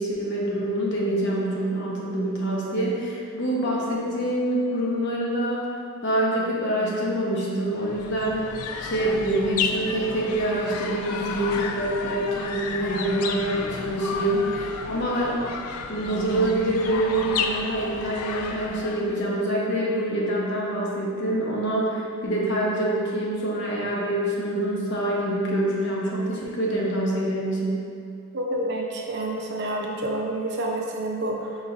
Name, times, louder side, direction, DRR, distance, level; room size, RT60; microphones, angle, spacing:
voice 1, 0.0-5.7 6.0-8.5 8.8-15.4 15.9-27.8, right 1 dB, 55° left, -4 dB, 0.8 m, -26 dB
sound 1, 7.7-19.2, left 5 dB, 85° left, 0.3 m, -32 dB
voice 2, 28.3-31.6, right 1 dB, 50° right, -1 dB, 0.5 m, -28 dB
5.2 x 3.9 x 2.5 m, 2.4 s
head